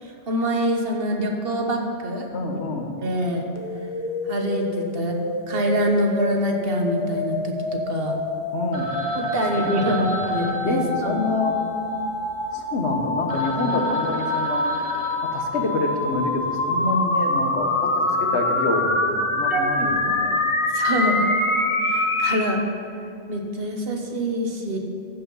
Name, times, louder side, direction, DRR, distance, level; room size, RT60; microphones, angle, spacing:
voice 1, 0.0-2.3 3.0-3.4 4.3-5.1 5.5-8.2 9.1-11.2 19.5-19.7 20.7-21.3 21.8-22.6 23.3-24.8, equal, 60° right, 2 dB, 1.3 m, -25 dB
voice 2, 2.3-2.9 8.5-10.3 10.6-11.6 12.5-14.7 15.2-20.4, left 2 dB, 80° left, 3 dB, 1.4 m, -27 dB
sound 1, 3.6-22.4, left 2 dB, 30° left, 1.0 m, -26 dB
Telephone, 8.7-12.5 13.0-13.1 13.3-16.2, right 1 dB, 45° right, 1.2 m, -34 dB
14.5 x 5.8 x 5.5 m, 2.6 s
omnidirectional pair, 1.1 m